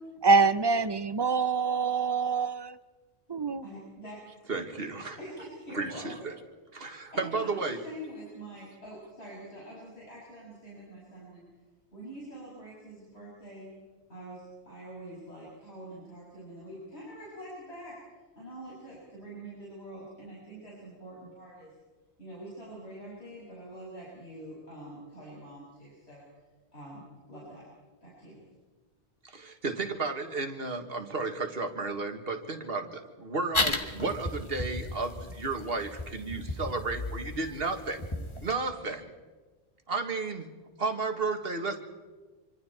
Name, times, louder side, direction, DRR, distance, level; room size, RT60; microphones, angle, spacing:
voice 1, 0.2-2.7 3.3-3.6, right 4 dB, 25° right, 0.6 m, -25 dB
voice 2, 3.6-4.2 5.2-6.0 6.8-11.4 11.9-13.7 14.1-17.9 18.4-21.7 22.2-26.2 26.7-27.7 28.0-28.4, right 1 dB, 65° left, 6.9 m, -45 dB
voice 3, 4.5-5.2 5.7-6.3 6.7-7.8 29.2-38.0 38.4-39.1 39.9-40.5 40.8-41.8, right 3 dB, 60° right, 1.9 m, -33 dB
sound 1, 33.5-38.5, left 2 dB, 25° left, 1.8 m, -34 dB
26.0 x 25.5 x 4.4 m
omnidirectional pair, 1.1 m